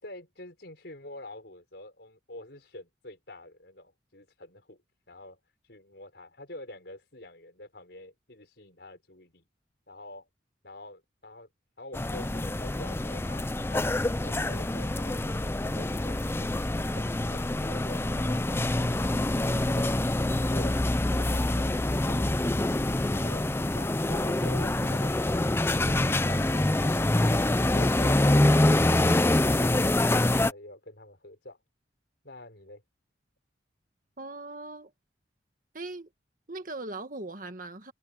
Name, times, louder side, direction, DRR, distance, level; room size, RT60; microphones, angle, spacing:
voice 1, 0.0-4.8 5.1-5.4 5.7-9.4 9.9-10.3 10.6-11.5 11.8-13.9 14.2-18.9 20.4-22.5 23.1-23.4 23.7-27.3 27.7-28.9 29.4-31.6 32.2-32.8, left 1 dB, 65° left, 5.2 m, -46 dB
sound 1, 11.9-30.5, left 1 dB, 15° left, 0.4 m, -25 dB
voice 2, 34.2-34.9 35.7-36.1 36.5-37.9, right 2 dB, 45° right, 1.7 m, -39 dB
head